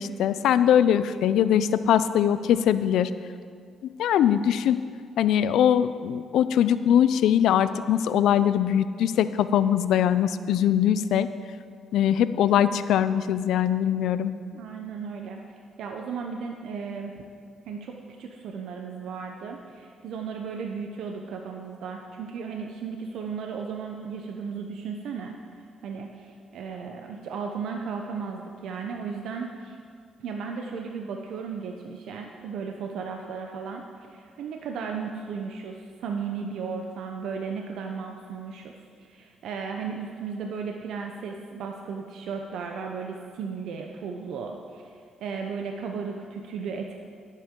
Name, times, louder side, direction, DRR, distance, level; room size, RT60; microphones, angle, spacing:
voice 1, 0.0-3.1 4.0-4.8 5.2-11.3 11.9-14.3, left 9 dB, 80° left, 13 dB, 0.4 m, -22 dB
voice 2, 14.5-17.1 17.7-25.3 25.8-29.8 30.2-33.8 34.1-46.9, right 5 dB, 80° right, 2 dB, 0.8 m, -35 dB
19.0 x 7.5 x 3.8 m, 2.2 s
cardioid pair, 90°, 0 cm